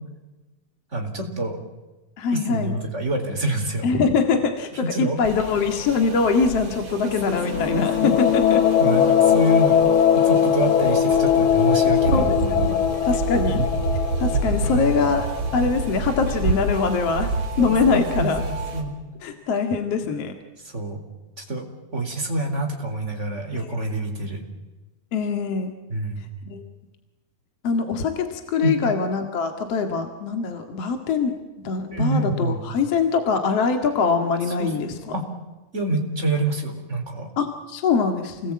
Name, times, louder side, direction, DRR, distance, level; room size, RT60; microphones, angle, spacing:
voice 1, 0.9-1.6 2.3-3.9 4.7-5.2 7.0-8.2 8.8-12.8 13.5-13.7 14.6-15.2 17.6-18.9 20.7-21.0 21.4-21.7 21.9-24.4 25.9-26.3 28.6-28.8 31.9-32.6 34.6-34.7 35.1-35.3 35.7-37.3, right 2 dB, 15° right, 3 dB, 3.9 m, -27 dB
voice 2, 2.2-2.8 3.8-8.6 12.1-12.8 13.1-13.6 14.2-18.4 19.2-20.3 23.5-23.8 25.1-25.7 26.5-26.6 27.6-35.1 37.4-38.5, left 5 dB, 45° left, 6 dB, 2.5 m, -23 dB
sound 1, 5.2-18.8, right 3 dB, 35° right, 5.1 m, -29 dB
sound 2, 7.3-15.9, left 9 dB, 65° left, 2.6 m, -20 dB
29.0 x 20.5 x 8.7 m, 1.2 s
omnidirectional pair, 4.6 m